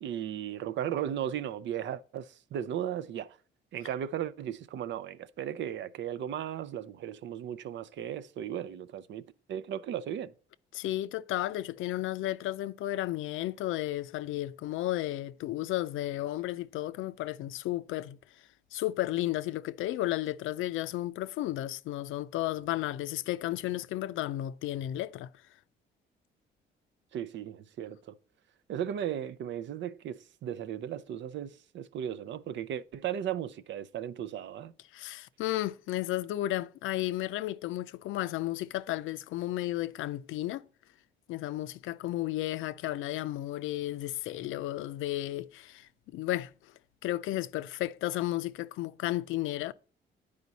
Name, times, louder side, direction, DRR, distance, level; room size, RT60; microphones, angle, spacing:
voice 1, 0.0-3.4 3.7-10.3 27.1-28.1 28.7-34.7, right 10 dB, 70° right, 0.6 m, -36 dB
voice 2, 10.7-18.2 18.7-25.3 34.9-40.6 41.3-46.5 47.0-49.7, left 15 dB, 85° left, 0.5 m, -33 dB
9.4 x 5.0 x 4.1 m
cardioid pair, 90°, 20 cm